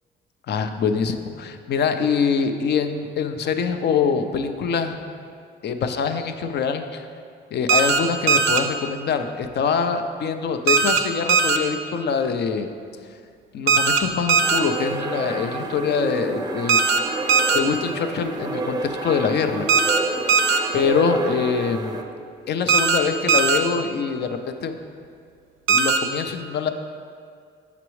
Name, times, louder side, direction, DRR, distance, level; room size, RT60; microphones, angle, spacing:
voice 1, 0.5-2.9 3.2-5.0 5.6-7.0 7.5-12.7 13.5-16.8 17.5-19.7 20.7-22.0 22.5-24.3 24.6-24.8 25.7-26.7, left 6 dB, 55° left, 8 dB, 0.5 m, -24 dB
sound 1, 7.7-8.0 8.3-8.6 10.7-11.0 11.3-11.6 13.7-14.0 14.3-14.6 16.7-17.0 17.3-17.6 19.7-20.0 20.3-20.6 22.7-23.0 23.3-23.6 25.7-26.0, right 5 dB, 85° right, 0.5 m, -18 dB
sound 2, 14.4-22.0, right 2 dB, 20° right, 0.5 m, -29 dB
6.9 x 5.9 x 3.1 m, 2.2 s
cardioid pair, 90°, 20 cm